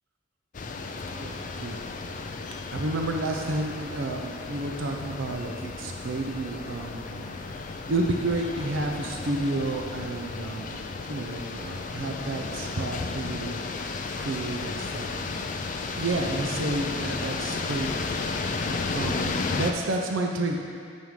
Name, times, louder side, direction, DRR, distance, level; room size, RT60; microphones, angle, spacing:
sound 1, 0.5-19.7, left 3 dB, 40° left, 0.4 m, -33 dB
voice 1, 1.1-1.8 2.7-7.3 7.9-10.8 11.1-13.6 14.2-15.1 16.0-17.9 18.9-20.6, right 2 dB, 85° right, 2 dB, 0.6 m, -30 dB
8.9 x 5.5 x 3.7 m, 2.1 s
head